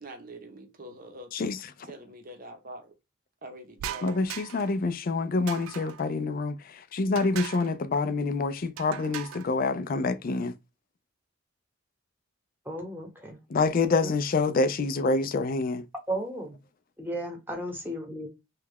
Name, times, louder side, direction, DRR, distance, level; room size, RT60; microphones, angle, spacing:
voice 1, 0.0-1.5 1.9-2.9 3.4-4.2, right 1 dB, 45° right, 0.7 m, -45 dB
voice 2, 1.3-1.9 4.0-10.5 13.5-15.9, left 3 dB, 45° left, 0.4 m, -27 dB
sound 1, 3.8-4.8 5.5-6.1 7.2-7.7 8.8-9.5, right 10 dB, 85° right, 0.3 m, -39 dB
voice 3, 12.6-13.4 14.0-14.1 16.1-16.6 17.0-18.3, right 1 dB, 10° right, 1.0 m, -34 dB
3.2 x 2.3 x 3.4 m
head